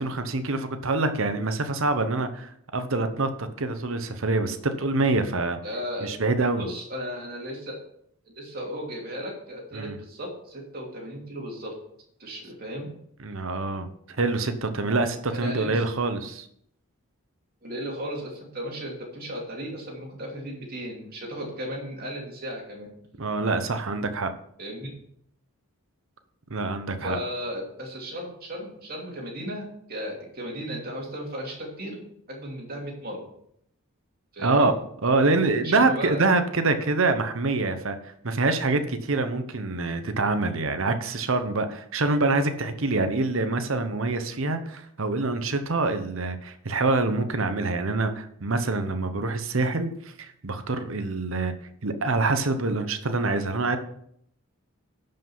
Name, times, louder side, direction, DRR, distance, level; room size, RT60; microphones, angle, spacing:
voice 1, 0.0-5.6 6.0-6.6 9.7-10.0 13.2-16.5 23.2-24.3 26.5-27.2 34.4-34.7 35.0-49.9 50.2-51.5 51.8-53.8, right 3 dB, 65° right, 9 dB, 0.9 m, -25 dB
voice 2, 5.6-6.1 6.6-7.7 8.2-11.7 12.2-12.9 15.3-15.8 17.6-22.9 24.6-24.9 27.0-32.0 32.3-33.3 34.3-34.7 35.6-36.2, equal, 45° right, -1 dB, 2.8 m, -35 dB
11.0 x 5.5 x 5.5 m, 0.70 s
head